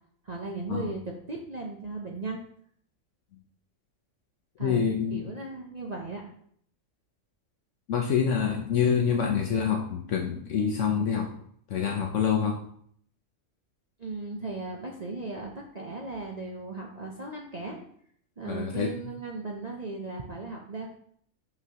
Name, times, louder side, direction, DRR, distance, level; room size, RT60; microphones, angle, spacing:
voice 1, 0.2-1.0 1.3-2.4 4.6-6.3 14.0-17.8 18.4-21.0, right 3 dB, 40° right, -1 dB, 0.7 m, -37 dB
voice 2, 4.6-5.2 7.9-11.3 11.7-12.6 18.4-18.9, left 7 dB, 65° left, 1 dB, 1.0 m, -26 dB
6.0 x 5.7 x 2.8 m, 0.63 s
omnidirectional pair, 1.4 m